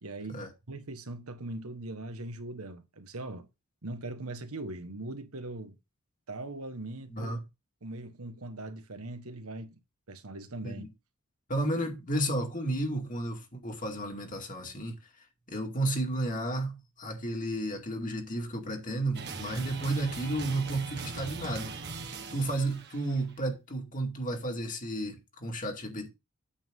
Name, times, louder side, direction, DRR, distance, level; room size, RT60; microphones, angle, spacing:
voice 1, 0.0-3.5 3.8-5.8 6.3-7.3 7.8-9.8 10.1-10.9, right 2 dB, 80° right, 1.4 m, -40 dB
voice 2, 11.5-15.0 15.5-21.8 22.3-26.1, right 1 dB, 35° left, 2.2 m, -32 dB
sound 1, 19.1-23.3, right 4 dB, 50° right, 1.3 m, -41 dB
8.9 x 7.4 x 3.7 m
head